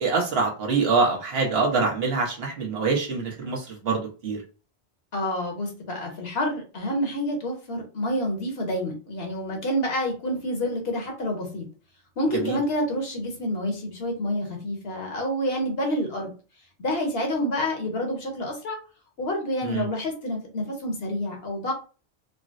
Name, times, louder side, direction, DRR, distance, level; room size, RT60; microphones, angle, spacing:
voice 1, 0.0-4.4 12.4-12.6 19.6-19.9, right 4 dB, 70° right, 0 dB, 1.1 m, -25 dB
voice 2, 5.1-11.7 12.2-16.3 16.8-18.8 19.2-21.7, left 1 dB, 70° left, 1 dB, 1.2 m, -28 dB
3.7 x 2.0 x 2.5 m, 0.35 s
omnidirectional pair, 1.1 m